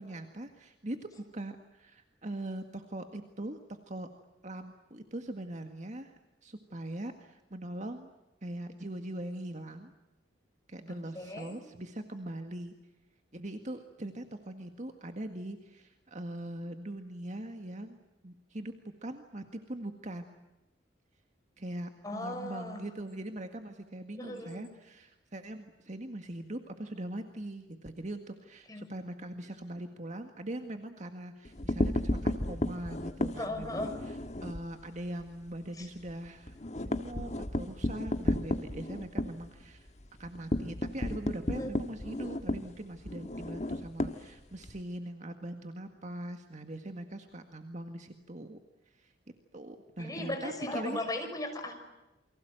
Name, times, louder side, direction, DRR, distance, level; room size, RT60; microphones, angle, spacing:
voice 1, 0.0-4.1 4.4-6.1 6.4-8.1 8.4-9.9 10.7-12.7 13.3-18.0 18.2-18.7 19.0-20.3 21.6-36.6 36.9-39.9 40.2-48.6 48.9-49.1 49.5-51.0, right 1 dB, 40° right, 6 dB, 1.8 m, -41 dB
voice 2, 10.9-11.6 22.0-22.8 24.2-24.7 28.7-28.9 33.4-33.9 35.8-35.9 41.5-41.7 50.0-51.8, left 1 dB, 20° left, 4 dB, 6.0 m, -37 dB
sound 1, 31.4-34.7 35.0-35.2 35.5-35.6 35.9-44.8, left 1 dB, 40° left, 1.6 m, -33 dB
29.0 x 24.0 x 7.9 m, 0.97 s
head